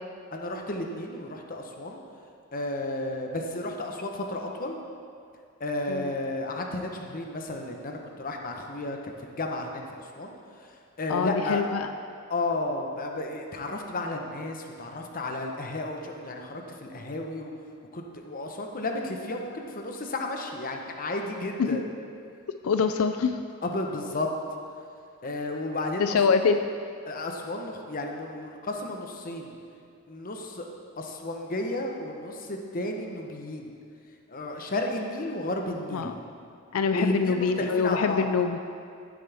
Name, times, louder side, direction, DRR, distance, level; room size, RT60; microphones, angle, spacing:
voice 1, 0.3-2.0 2.5-4.8 5.6-10.3 11.0-11.6 12.3-17.5 17.9-21.8 23.6-24.3 25.2-26.0 26.3-26.4 27.1-29.6 30.1-30.7 31.0-33.7 34.3-36.1 36.9-38.3, left 2 dB, 40° left, 2 dB, 1.0 m, -33 dB
voice 2, 11.1-11.9 21.6-21.8 22.6-23.4 26.0-26.7 35.9-36.2 36.7-38.6, left 5 dB, 90° left, 8 dB, 0.4 m, -25 dB
15.5 x 7.7 x 3.5 m, 2.4 s
head